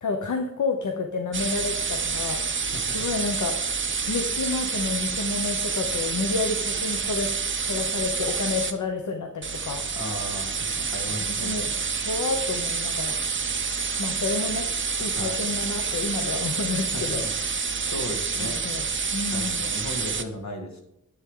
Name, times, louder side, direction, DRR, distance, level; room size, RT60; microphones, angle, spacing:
voice 1, 0.0-3.5 4.1-7.3 7.6-9.8 11.2-11.7 12.1-13.2 14.0-14.7 15.0-17.3 18.4-18.9 19.1-19.6, left 4 dB, 80° left, 5 dB, 0.9 m, -30 dB
sound 1, 1.3-8.7 9.4-20.2, right 5 dB, 40° right, 0.7 m, -28 dB
voice 2, 9.9-11.6 15.2-15.5 16.9-17.0 17.9-18.6 19.3-20.8, left 1 dB, 65° left, 3 dB, 2.0 m, -36 dB
10.0 x 8.2 x 3.7 m, 0.82 s
wide cardioid pair, 100°, 29 cm